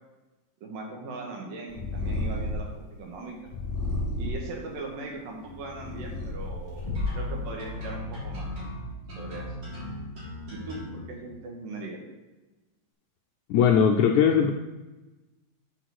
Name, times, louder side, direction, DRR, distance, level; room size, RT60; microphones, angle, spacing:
voice 1, 0.6-3.5 4.2-8.4 9.2-9.5 10.5-12.0, right 3 dB, 75° right, 0 dB, 3.2 m, -39 dB
Purr, 1.7-2.8 3.5-4.5 5.3-7.4, left 2 dB, 15° left, 2.5 m, -31 dB
sound 1, 6.9-10.9, left 1 dB, 55° right, 4.8 m, -37 dB
voice 2, 13.5-14.5, left 7 dB, 85° left, 3 dB, 1.7 m, -19 dB
7.3 x 5.8 x 6.3 m, 1.1 s
omnidirectional pair, 4.0 m